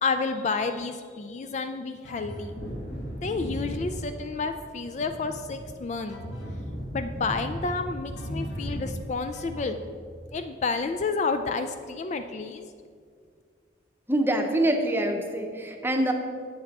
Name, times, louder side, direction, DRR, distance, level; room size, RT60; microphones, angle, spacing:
voice 1, 0.0-2.5 3.2-6.2 6.9-9.8 10.3-12.6, left 4 dB, 35° left, 8 dB, 0.3 m, -30 dB
sound 1, 2.0-2.6 6.1-6.6 8.2-8.8 9.3-9.8, equal, 85° left, 1.4 m, -40 dB
Wind / Thunder, 2.3-10.6 10.9-11.0, equal, 65° left, 2.5 m, -37 dB
voice 2, 14.1-16.1, right 1 dB, 10° right, 3 dB, 0.7 m, -25 dB
8.0 x 6.9 x 5.3 m, 2.1 s
head